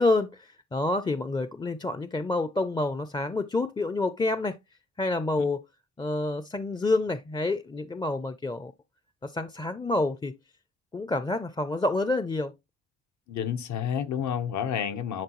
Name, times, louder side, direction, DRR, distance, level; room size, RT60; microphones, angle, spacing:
voice 1, 0.0-4.6 5.0-5.6 6.0-8.7 9.2-10.4 10.9-12.5, left 2 dB, 15° left, 0.4 m, -28 dB
voice 2, 13.3-15.2, left 8 dB, 70° left, 1.0 m, -30 dB
10.5 x 3.8 x 3.0 m
cardioid pair, 90°, 30 cm